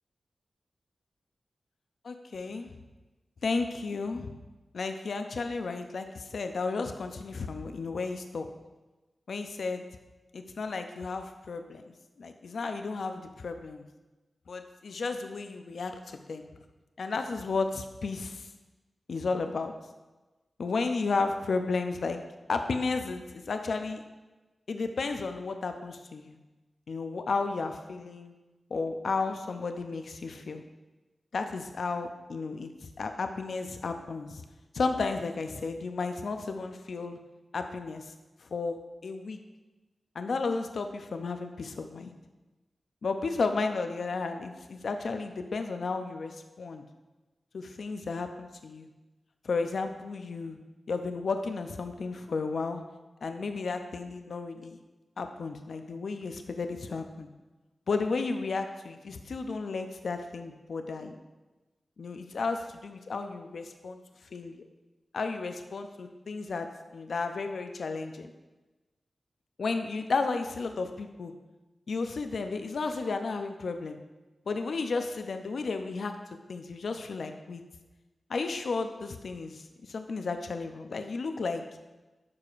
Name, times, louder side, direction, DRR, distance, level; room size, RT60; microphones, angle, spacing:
voice 1, 2.0-2.7 3.4-4.3 4.7-8.5 9.3-9.8 10.3-13.8 14.5-16.4 17.0-18.5 19.1-19.7 20.6-22.2 22.5-24.0 24.7-26.4 26.9-28.3 28.7-30.6 31.3-32.7 33.0-34.4 34.7-37.2 37.5-38.1 38.4-39.4 40.1-42.1 43.0-46.8 47.5-48.9 49.4-50.6 50.9-52.8 53.2-54.8 55.2-57.3 57.9-61.2 62.0-64.0 64.3-64.6 65.1-66.7 66.9-68.3 69.6-71.3 71.9-74.0 74.5-76.2 76.5-77.6 78.3-81.6, left 4 dB, 75° left, 7 dB, 0.5 m, -33 dB
10.5 x 4.8 x 2.5 m, 1.1 s
cardioid pair, 45°, 0 cm